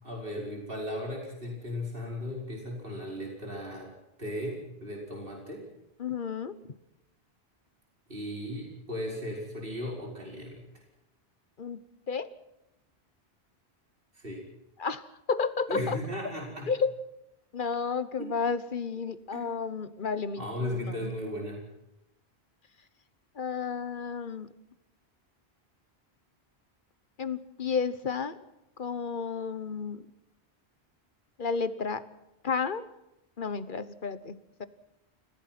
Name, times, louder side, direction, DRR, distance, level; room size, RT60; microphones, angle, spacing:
voice 1, 0.0-3.9 4.2-5.6 8.1-10.6 14.1-14.4 15.7-16.7 19.3-19.4 20.4-21.6, left 1 dB, 60° right, -1 dB, 5.5 m, -36 dB
voice 2, 6.0-6.6 11.6-11.8 12.1-12.3 14.8-16.0 16.7-17.0 17.5-21.1 23.3-24.5 27.2-28.4 28.8-30.0 31.4-32.0 32.4-32.8 33.4-34.7, left 5 dB, 50° left, 13 dB, 1.3 m, -32 dB
29.5 x 16.0 x 6.0 m, 0.89 s
omnidirectional pair, 1.1 m